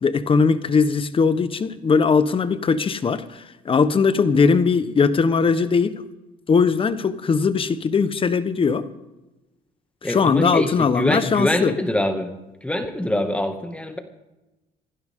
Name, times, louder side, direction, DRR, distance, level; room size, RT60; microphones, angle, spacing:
voice 1, 0.0-6.0 6.5-8.8 10.0-11.7, left 5 dB, 30° left, 12 dB, 1.2 m, -20 dB
voice 2, 10.0-12.3 12.6-14.0, left 1 dB, 5° left, 5 dB, 2.2 m, -24 dB
27.0 x 11.5 x 3.8 m, 1.0 s
cardioid pair, 110°, 17 cm